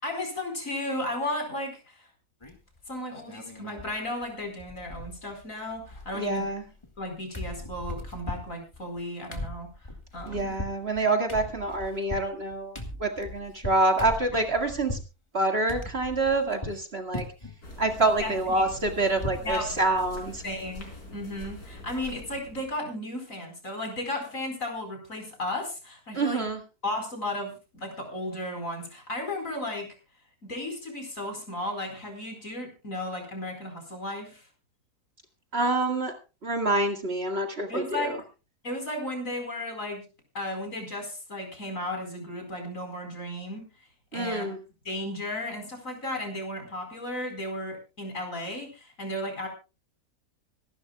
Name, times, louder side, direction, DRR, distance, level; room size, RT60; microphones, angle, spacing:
voice 1, 0.0-2.1 2.9-6.4 7.0-10.6 18.2-18.6 19.4-19.7 20.4-26.5 26.8-29.9 30.4-34.5 37.7-38.2 38.6-40.0 40.3-43.7 44.1-44.5 44.8-49.5, left 1 dB, 60° left, 4 dB, 5.0 m, -34 dB
sound 1, 2.4-2.8 3.1-3.9 4.2-4.3 4.6-5.4 5.7-7.1 7.3-15.1 15.7-16.8 17.1-17.6 17.9-19.5 19.9-20.0 20.3-20.5, left 1 dB, 20° left, 2.1 m, -39 dB
voice 2, 6.1-6.6 10.3-15.0 15.3-17.3 17.8-20.4 26.1-26.6 35.5-36.1 36.4-38.2 44.1-44.6, right 2 dB, 40° right, 4 dB, 2.2 m, -27 dB
sound 2, 17.6-22.7, left 2 dB, 85° left, 4.9 m, -44 dB
25.5 x 12.0 x 2.3 m, 0.30 s
omnidirectional pair, 1.6 m